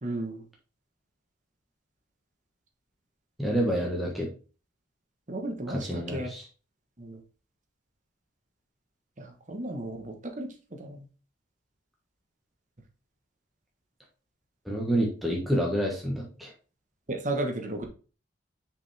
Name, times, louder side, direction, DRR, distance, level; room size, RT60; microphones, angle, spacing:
voice 1, 0.0-0.4 5.3-6.3 7.0-7.2 9.2-10.5 10.8-11.0 17.1-17.9, right 1 dB, 40° right, 4 dB, 1.2 m, -34 dB
voice 2, 3.4-4.3 5.7-6.4 14.6-16.5, equal, ahead, -2 dB, 1.5 m, -28 dB
6.1 x 5.2 x 3.4 m, 0.34 s
head